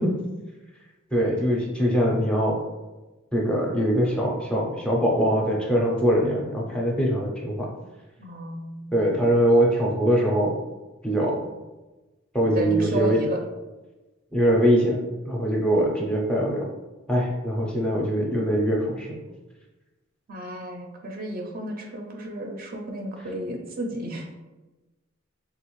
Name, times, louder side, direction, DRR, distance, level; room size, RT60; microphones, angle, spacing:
voice 1, 1.1-2.6 3.3-7.7 8.9-10.5 11.0-11.5 12.3-13.2 14.3-15.0 15.3-16.6 17.1-19.2, equal, 5° left, -3 dB, 0.5 m, -22 dB
voice 2, 8.2-9.3 12.4-13.4 20.3-24.3, right 1 dB, 45° right, 2 dB, 0.5 m, -33 dB
3.3 x 2.4 x 3.0 m, 1.1 s
head